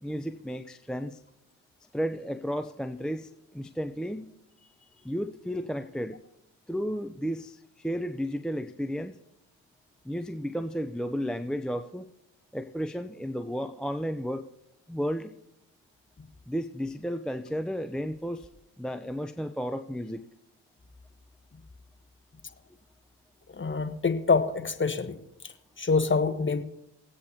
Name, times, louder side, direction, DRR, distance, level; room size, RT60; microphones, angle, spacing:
voice 1, 0.0-1.2 1.9-4.3 4.6-4.7 5.0-6.2 6.7-9.2 10.0-12.1 12.5-14.4 14.9-15.3 16.5-18.5 18.8-20.2, equal, ahead, 8 dB, 0.5 m, -33 dB
voice 2, 23.5-25.2 25.4-25.5 25.8-26.6, left 4 dB, 25° left, 10 dB, 1.1 m, -26 dB
21.5 x 8.5 x 2.8 m, 0.84 s
hypercardioid pair, 45°, 45 cm